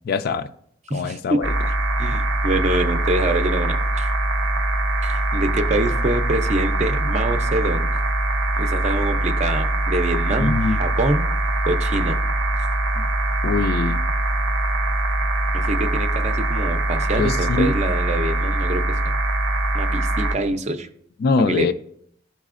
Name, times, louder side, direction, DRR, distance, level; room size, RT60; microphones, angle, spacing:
voice 1, 0.1-0.5 0.9-1.5 10.4-10.8 13.4-14.0 17.2-17.8 21.2-21.7, left 4 dB, 55° left, 0.3 m, -22 dB
voice 2, 0.9-1.4 2.0-4.1 5.0-7.9 8.6-11.3 11.7-12.2 15.5-18.8 19.7-20.9 21.5-21.7, right 2 dB, 35° right, 0.5 m, -25 dB
sound 1, 1.4-20.3, right 2 dB, 80° right, 0.7 m, -22 dB
11.5 x 4.0 x 2.4 m
head